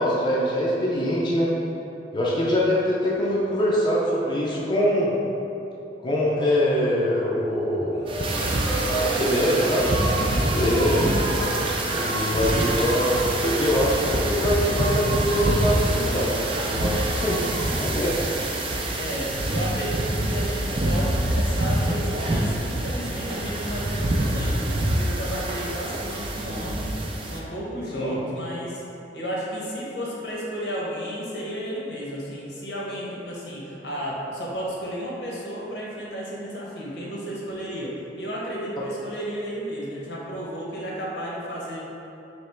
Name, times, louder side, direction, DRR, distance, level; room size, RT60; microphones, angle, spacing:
voice 1, 0.0-1.5 2.1-5.1 6.0-8.0 8.9-9.8 10.5-11.2 12.0-16.3 16.6-17.4 17.8-18.2 27.9-28.2, equal, 25° left, -7 dB, 0.5 m, -23 dB
sound 1, 7.9-18.9, right 1 dB, 75° right, 0.6 m, -33 dB
sound 2, 8.1-27.4, right 1 dB, 30° right, 0.4 m, -26 dB
voice 2, 9.5-10.3 10.8-11.1 12.4-12.9 19.0-26.9 27.2-28.8 29.1-41.8, equal, 70° left, -5 dB, 0.9 m, -33 dB
3.1 x 2.9 x 4.3 m, 2.9 s
head